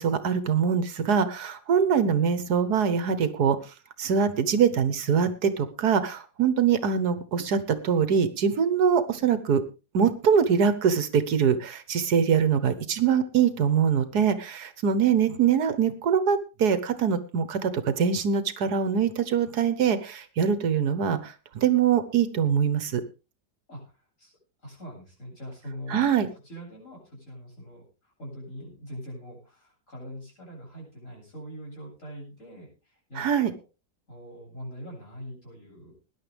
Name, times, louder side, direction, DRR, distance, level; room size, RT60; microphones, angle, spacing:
voice 1, 0.0-3.6 4.0-9.6 9.9-23.0 25.9-26.3 33.2-33.5, right 7 dB, 75° right, 12 dB, 1.7 m, -23 dB
voice 2, 24.6-26.0 26.4-33.3 34.1-36.0, equal, 50° left, -2 dB, 8.4 m, -42 dB
20.0 x 10.5 x 3.5 m, 0.30 s
omnidirectional pair, 1.7 m